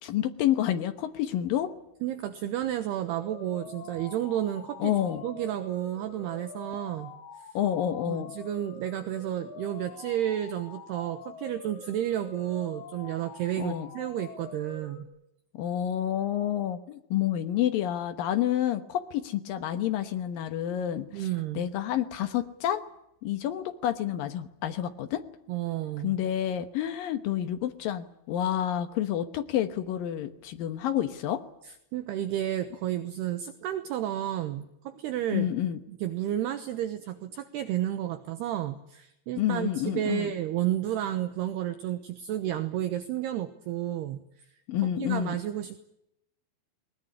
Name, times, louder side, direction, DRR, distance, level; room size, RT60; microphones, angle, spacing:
voice 1, 0.0-1.7 4.8-5.2 7.5-8.3 13.6-13.9 15.5-21.3 21.5-22.8 23.2-25.2 26.0-31.4 35.3-35.8 39.4-40.3 44.7-45.4, left 11 dB, 80° left, 8 dB, 2.0 m, -29 dB
voice 2, 2.0-4.9 5.2-7.1 7.4-7.5 8.1-15.1 21.1-21.6 25.5-26.2 31.9-35.5 35.9-44.2 44.8-45.8, right 12 dB, 75° right, 10 dB, 2.6 m, -31 dB
sound 1, 3.0-15.0, left 6 dB, 50° left, 2.5 m, -46 dB
20.5 x 20.0 x 10.0 m, 0.81 s
omnidirectional pair, 5.8 m